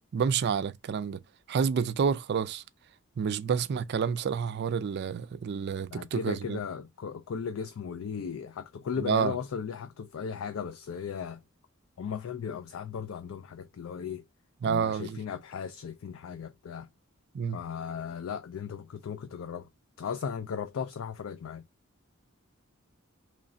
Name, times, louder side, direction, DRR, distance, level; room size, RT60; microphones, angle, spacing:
voice 1, 0.1-1.2 1.5-2.6 3.2-6.6 9.0-9.3 14.6-15.2 17.3-17.6, right 6 dB, 55° right, 0.4 m, -29 dB
voice 2, 5.9-11.4 12.0-14.2 14.6-16.9 17.5-19.7 20.0-21.6, left 6 dB, 70° left, 0.4 m, -36 dB
3.1 x 2.5 x 4.0 m
head